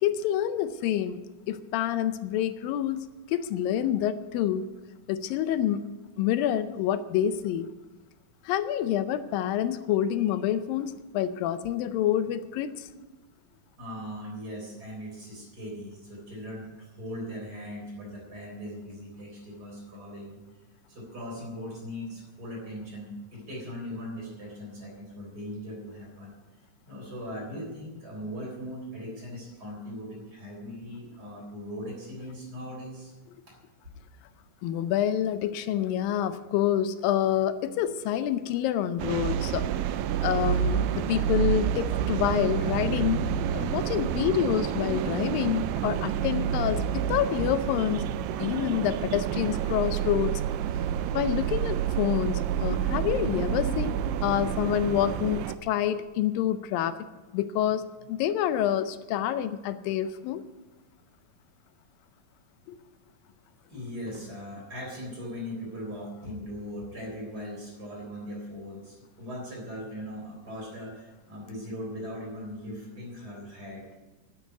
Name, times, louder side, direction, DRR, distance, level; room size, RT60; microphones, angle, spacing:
voice 1, 0.0-4.7 5.1-5.8 6.2-7.7 8.5-12.9 34.6-39.7 40.2-43.3 43.5-48.1 48.4-50.4 51.1-53.9 54.2-57.0 57.3-60.4 62.7-62.8, left 11 dB, 85° left, 12 dB, 2.4 m, -27 dB
voice 2, 13.8-20.4 20.9-26.3 26.9-33.1 33.5-33.6 63.7-74.0, equal, 25° right, -1 dB, 4.1 m, -39 dB
sound 1, 39.0-55.6, right 9 dB, 85° right, 2.3 m, -29 dB
sound 2, 39.7-47.4, right 2 dB, 65° right, 0.9 m, -50 dB
10.5 x 9.4 x 9.3 m, 1.1 s
omnidirectional pair, 4.0 m